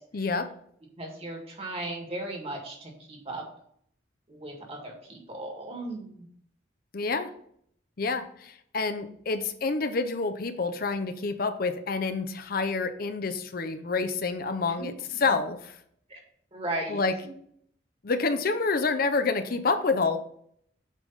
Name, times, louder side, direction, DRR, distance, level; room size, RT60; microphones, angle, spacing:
voice 1, 0.1-0.5 6.9-7.3 8.0-14.9 15.2-15.7 16.9-17.1 18.0-20.2, left 4 dB, 50° left, 9 dB, 0.6 m, -28 dB
voice 2, 1.0-3.4 4.3-6.3 14.8-15.2 16.1-16.2 16.5-17.0, right 2 dB, 30° right, 0 dB, 1.7 m, -36 dB
8.2 x 3.4 x 5.5 m, 0.67 s
head